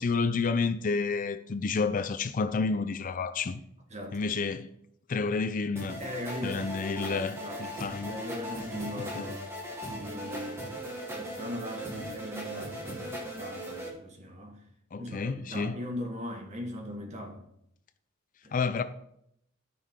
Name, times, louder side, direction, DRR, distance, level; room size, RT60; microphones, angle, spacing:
voice 1, 0.0-3.6 4.1-4.7 5.1-6.0 6.4-8.2 9.2-9.3 14.9-15.8 18.5-18.8, left 4 dB, 40° left, 0.4 m, -30 dB
sound 1, 5.8-13.9, equal, 15° right, 1.8 m, -39 dB
voice 2, 6.0-6.6 7.3-7.7 8.1-9.4 9.9-10.6 11.1-13.1 13.4-14.6 15.0-17.4 18.4-18.5, left 1 dB, 35° right, 1.7 m, -39 dB
13.0 x 5.7 x 3.7 m
head